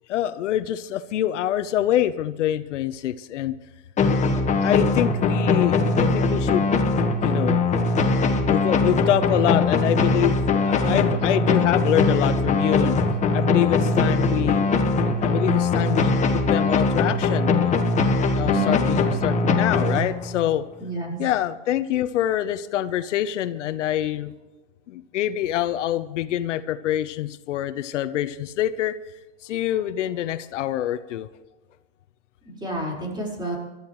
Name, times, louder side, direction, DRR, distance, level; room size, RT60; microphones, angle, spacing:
voice 1, 0.1-3.5 4.6-6.7 7.2-7.6 8.4-13.0 13.3-14.6 15.0-17.7 18.3-20.6 21.2-24.3 24.9-29.0 29.4-31.3, left 12 dB, 80° left, 13 dB, 1.0 m, -25 dB
sound 1, 4.0-20.5, left 3 dB, 20° left, 1.4 m, -21 dB
voice 2, 18.4-18.8 20.8-21.2 32.6-33.6, right 1 dB, 10° right, -2 dB, 4.8 m, -29 dB
27.0 x 13.5 x 3.1 m, 1.1 s
supercardioid pair, 140°, 36 cm